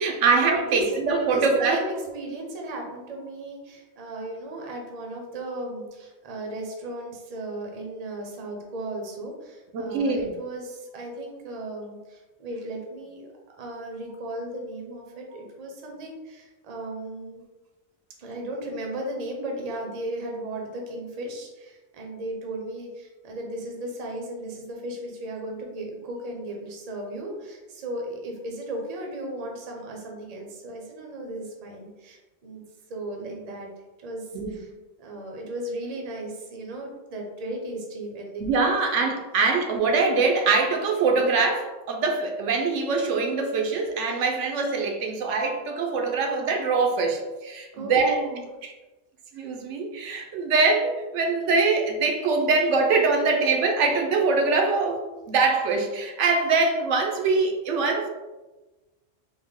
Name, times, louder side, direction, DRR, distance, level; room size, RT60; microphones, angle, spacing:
voice 1, 0.0-1.8 9.7-10.3 34.3-34.6 38.4-48.2 48.6-48.7 49.3-58.1, right 4 dB, 85° right, 2 dB, 0.9 m, -23 dB
voice 2, 1.1-13.3 13.5-17.4 18.2-32.6 32.9-33.7 34.0-34.7 35.0-38.4 47.8-48.4, right 1 dB, 40° right, 0 dB, 0.6 m, -36 dB
3.5 x 2.1 x 3.5 m, 1.1 s
omnidirectional pair, 1.2 m